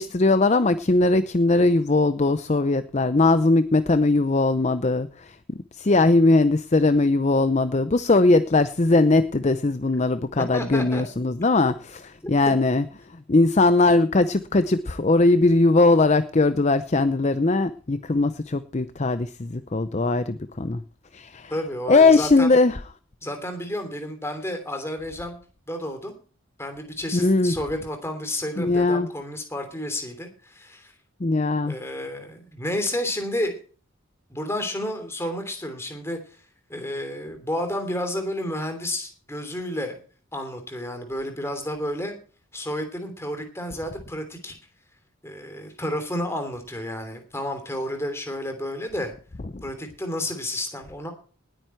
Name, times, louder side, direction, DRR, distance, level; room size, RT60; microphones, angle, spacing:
voice 1, 0.0-12.8 13.3-20.8 21.1-21.5 21.9-22.8 27.1-27.5 28.6-29.1 31.2-31.7 49.5-49.6, left 2 dB, 35° left, 12 dB, 0.6 m, -20 dB
voice 2, 10.5-11.0 21.5-22.5 23.2-25.4 25.7-26.1 26.6-30.9 31.7-33.5 34.3-36.4 36.7-40.0 40.3-42.2 42.5-44.6 45.2-49.1 49.6-51.1, left 1 dB, 10° left, 6 dB, 3.1 m, -31 dB
19.0 x 9.2 x 4.5 m, 0.39 s
head